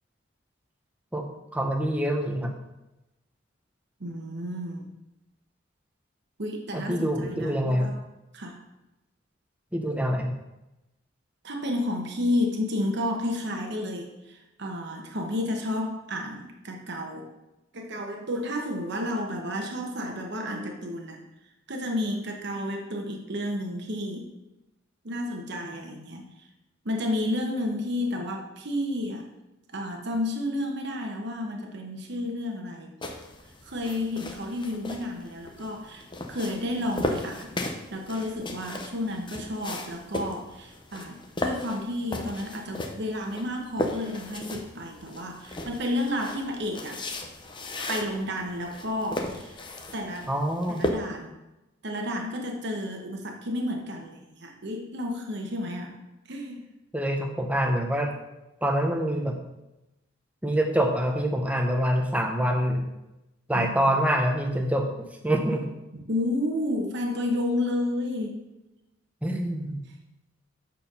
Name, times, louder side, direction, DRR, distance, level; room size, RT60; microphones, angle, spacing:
voice 1, 1.5-2.5 6.7-8.0 9.7-10.4 50.3-50.8 56.9-58.1 58.6-59.4 60.4-62.9 63.5-64.9 65.2-65.6 69.2-69.8, equal, 5° right, 2 dB, 0.8 m, -25 dB
voice 2, 4.0-4.8 6.4-8.0 8.3-8.6 11.4-17.3 17.7-21.2 21.7-24.3 25.0-26.5 26.8-29.3 29.7-32.9 33.6-36.0 36.3-37.6 37.9-47.0 47.9-49.6 49.9-50.3 50.7-51.3 51.8-56.0 56.3-56.7 63.5-63.7 66.1-68.4, left 1 dB, 60° right, 2 dB, 1.0 m, -31 dB
sound 1, 33.0-50.9, left 1 dB, 25° left, 0.7 m, -36 dB
7.4 x 4.5 x 5.4 m, 0.97 s
head